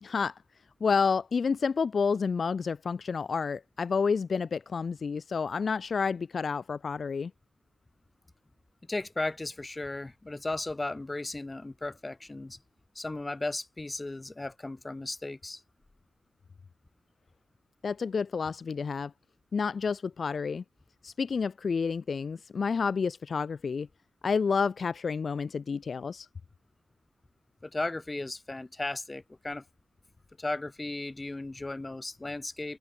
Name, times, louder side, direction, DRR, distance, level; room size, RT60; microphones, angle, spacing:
voice 1, 0.0-0.4 0.8-7.3 17.8-19.1 19.5-20.6 21.0-23.9 24.2-26.3, left 5 dB, 55° left, 1.6 m, -29 dB
voice 2, 8.9-12.6 12.9-15.6 27.6-29.6 30.4-32.8, left 2 dB, 25° left, 7.9 m, -35 dB
cardioid pair, 80°, 0 cm